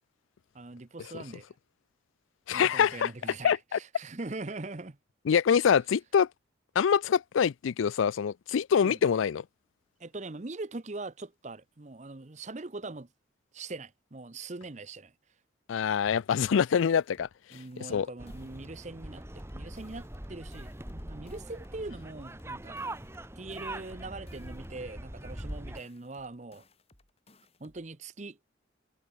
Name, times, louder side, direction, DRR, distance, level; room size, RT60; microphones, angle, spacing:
voice 1, 0.5-1.5 2.5-5.0 8.8-9.0 10.0-13.1 13.5-15.1 17.5-22.8 23.4-26.7 27.6-28.4, right 3 dB, 35° right, 0.8 m, -42 dB
voice 2, 2.5-3.1 3.4-3.8 5.3-6.3 6.8-9.4 15.7-17.3 17.9-18.1, left 7 dB, 85° left, 0.4 m, -25 dB
sound 1, 16.2-18.9 19.2-21.9 22.2-24.9 25.2-27.9, left 2 dB, 30° left, 5.4 m, -63 dB
sound 2, 18.2-25.8, right 1 dB, 15° right, 1.9 m, -42 dB
head